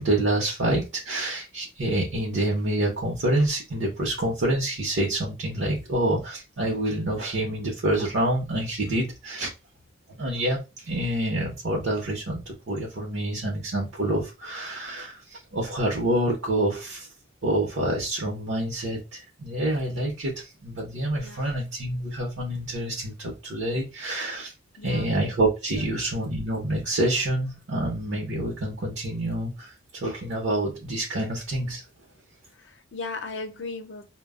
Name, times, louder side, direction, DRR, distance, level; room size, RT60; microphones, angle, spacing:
voice 1, 0.0-9.5 10.2-17.1 17.4-24.5 24.8-31.8, right 1 dB, 80° right, 0.8 m, -27 dB
voice 2, 24.8-25.2 25.8-25.9 32.5-34.1, left 3 dB, 65° left, 0.5 m, -37 dB
2.2 x 2.0 x 3.5 m
head